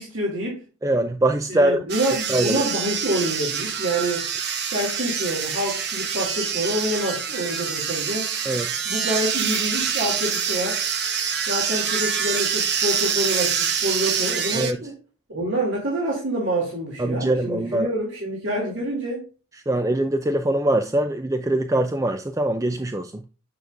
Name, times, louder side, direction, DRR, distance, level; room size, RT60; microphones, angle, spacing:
voice 1, 0.0-0.6 1.5-4.2 4.7-8.3 8.8-10.8 11.5-14.9 15.3-19.3, right 1 dB, 75° right, 2.6 m, -27 dB
voice 2, 0.8-1.8 2.3-2.6 8.5-8.8 14.5-14.8 17.0-17.9 19.7-23.2, right 1 dB, 15° right, 0.4 m, -23 dB
sound 1, 1.9-14.7, right 7 dB, 55° right, 0.9 m, -26 dB
9.3 x 6.1 x 2.5 m
head